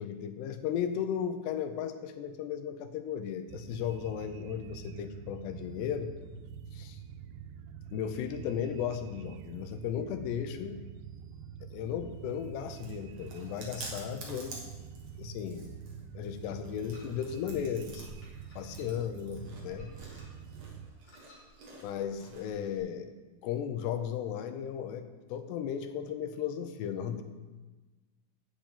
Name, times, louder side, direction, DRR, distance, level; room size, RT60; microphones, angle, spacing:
voice 1, 0.0-6.1 6.7-7.0 7.9-10.8 11.6-14.7 15.2-15.8 16.1-18.1 18.6-19.9 21.8-23.1 23.4-27.2, left 8 dB, 80° left, 8 dB, 2.8 m, -35 dB
sound 1, 3.5-20.9, right 8 dB, 85° right, 2.7 m, -46 dB
Chewing mastication, 12.1-22.8, right 2 dB, 50° right, 2.2 m, -50 dB
sound 2, 16.9-17.5 18.2-19.2 19.8-20.5 21.0-21.4, left 1 dB, 35° left, 3.4 m, -58 dB
8.4 x 6.3 x 8.3 m, 1.2 s
omnidirectional pair, 5.0 m